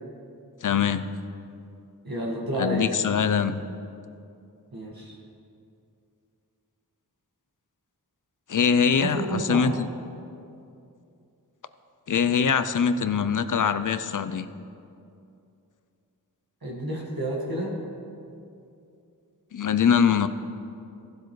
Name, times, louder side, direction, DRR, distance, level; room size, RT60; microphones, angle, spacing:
voice 1, 0.6-1.0 2.6-3.6 8.5-9.9 12.1-14.5 19.5-20.3, left 7 dB, 55° left, 12 dB, 0.5 m, -23 dB
voice 2, 2.0-2.9 4.7-5.2 9.0-9.7 16.6-17.8, right 1 dB, 65° right, -3 dB, 1.8 m, -30 dB
15.5 x 7.8 x 3.2 m, 2.6 s
wide cardioid pair, 40°, 38 cm